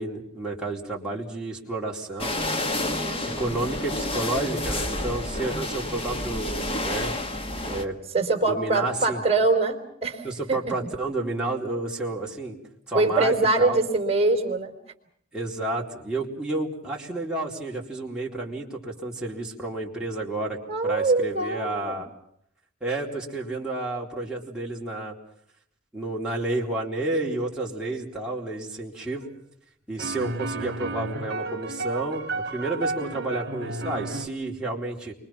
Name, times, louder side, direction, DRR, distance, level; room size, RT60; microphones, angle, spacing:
voice 1, 0.0-2.4 3.2-7.1 7.7-7.9 8.4-9.2 10.2-12.6 12.9-13.8 15.3-22.1 22.8-25.1 25.9-29.3 29.9-35.1, right 2 dB, 5° right, -4 dB, 4.1 m, -31 dB
sound 1, 2.2-7.9, left 1 dB, 30° left, 1.5 m, -29 dB
voice 2, 2.8-3.3 8.1-10.6 12.9-14.7 20.7-22.0, right 3 dB, 30° right, 3 dB, 3.9 m, -24 dB
sound 2, 29.2-29.3 30.0-34.3, right 3 dB, 55° right, 2.7 m, -32 dB
30.0 x 24.5 x 5.9 m, 0.69 s
head